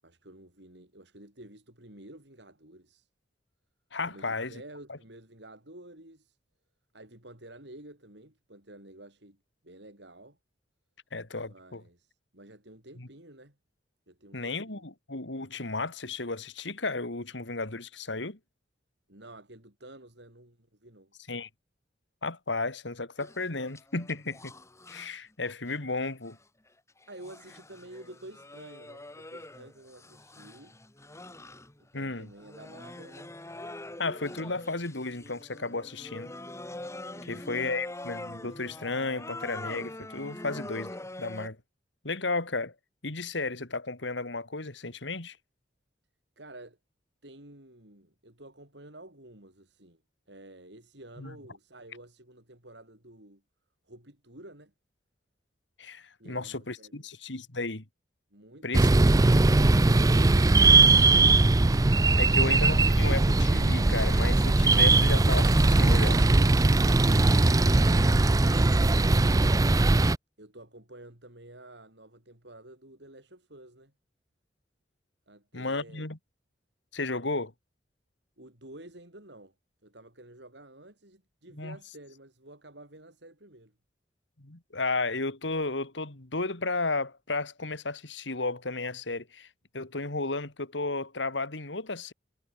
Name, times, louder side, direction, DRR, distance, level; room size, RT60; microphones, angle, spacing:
voice 1, 0.0-3.1 4.0-6.4 6.9-9.4 9.6-10.4 11.4-13.6 14.1-14.8 19.1-21.1 27.1-30.8 31.8-33.3 37.1-37.7 46.4-46.8 47.2-50.0 50.3-53.4 53.9-54.7 56.2-57.1 58.3-58.9 67.3-67.9 70.4-73.9 75.3-76.1 78.4-79.5 79.8-83.7, right 1 dB, 65° right, 7.3 m, -50 dB
voice 2, 3.9-4.6 4.9-5.0 11.1-11.8 13.0-13.1 14.3-18.4 21.3-21.5 22.2-24.5 24.9-26.4 31.9-32.3 34.0-36.3 37.2-41.6 42.0-42.7 43.0-45.4 51.2-51.3 55.8-57.8 58.6-58.9 62.1-66.2 75.5-76.2 76.9-77.5 81.6-81.8 84.4-89.5 89.7-92.1, left 3 dB, 75° left, 2.6 m, -33 dB
sound 1, 23.2-25.1 25.5-26.4 27.0-31.9 32.4-41.5, left 1 dB, 15° left, 1.8 m, -44 dB
sound 2, 58.7-70.2, right 2 dB, 20° right, 0.4 m, -20 dB
head